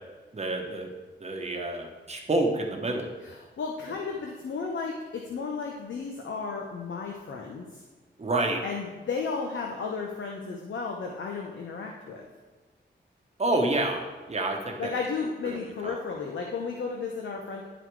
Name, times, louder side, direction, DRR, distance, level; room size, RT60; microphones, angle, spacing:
voice 1, 0.3-0.9 1.2-3.1 8.2-8.6 13.4-14.9 15.4-15.6 15.8-16.0, right 2 dB, 35° right, 2 dB, 1.1 m, -28 dB
voice 2, 3.2-7.8 8.6-12.3 14.8-17.6, left 5 dB, 85° left, 0 dB, 0.9 m, -34 dB
11.0 x 4.0 x 4.7 m, 1.3 s
wide cardioid pair, 115°, 19 cm